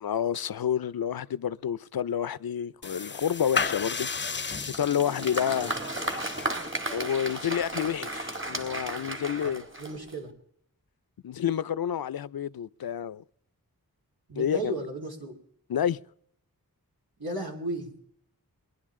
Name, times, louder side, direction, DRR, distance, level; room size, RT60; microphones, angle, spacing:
voice 1, 0.0-4.3 4.8-5.7 6.9-9.6 11.2-13.2 14.4-14.7 15.7-16.0, left 9 dB, 75° left, 0.5 m, -29 dB
sound 1, 2.8-9.5, left 5 dB, 30° left, 0.6 m, -36 dB
Applause, 4.7-10.3, right 1 dB, 35° right, 2.1 m, -34 dB
voice 2, 9.7-10.3 14.3-15.4 17.2-17.9, right 2 dB, 85° right, 4.2 m, -34 dB
23.5 x 11.0 x 3.7 m
wide cardioid pair, 45°, 36 cm